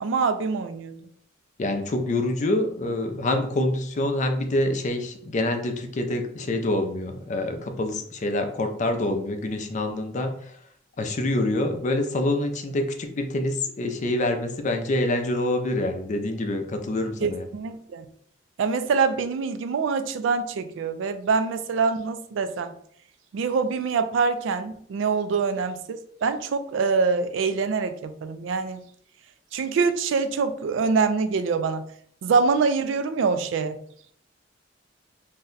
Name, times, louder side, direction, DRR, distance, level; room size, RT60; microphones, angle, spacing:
voice 1, 0.0-1.0 17.2-18.0 18.6-22.7 23.3-28.8 29.5-31.8 32.2-33.8, right 5 dB, 75° right, 10 dB, 0.3 m, -25 dB
voice 2, 1.6-10.3 11.0-17.5, left 1 dB, 40° left, 5 dB, 0.4 m, -26 dB
2.6 x 2.1 x 3.8 m, 0.63 s
head